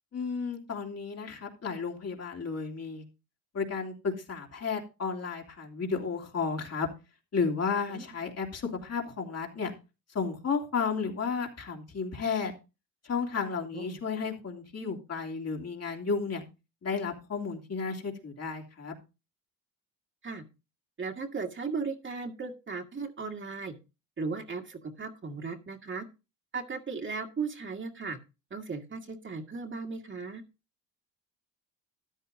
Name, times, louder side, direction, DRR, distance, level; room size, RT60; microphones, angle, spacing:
voice 1, 0.1-3.0 3.5-6.9 7.3-9.7 10.1-12.5 13.0-16.4 16.8-18.9, left 5 dB, 45° left, 0 dB, 2.9 m, -33 dB
voice 2, 21.0-23.8 24.2-26.1 26.5-28.2 28.5-30.4, right 4 dB, 30° right, 4 dB, 2.0 m, -36 dB
13.5 x 10.0 x 2.6 m, 0.29 s
cardioid pair, 90°, 36 cm